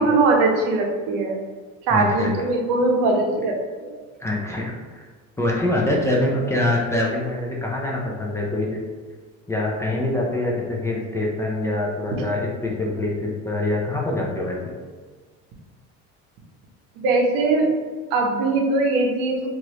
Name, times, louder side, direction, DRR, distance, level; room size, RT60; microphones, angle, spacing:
voice 1, 0.0-1.3 1.9-4.0 17.0-17.7 18.1-19.5, right 3 dB, 80° right, 1 dB, 0.7 m, -21 dB
voice 2, 1.9-2.3 4.2-5.0 5.4-8.8 9.5-14.6, left 1 dB, 10° left, -3 dB, 0.4 m, -24 dB
2.9 x 2.6 x 2.9 m, 1.5 s
cardioid pair, 125°, 33 cm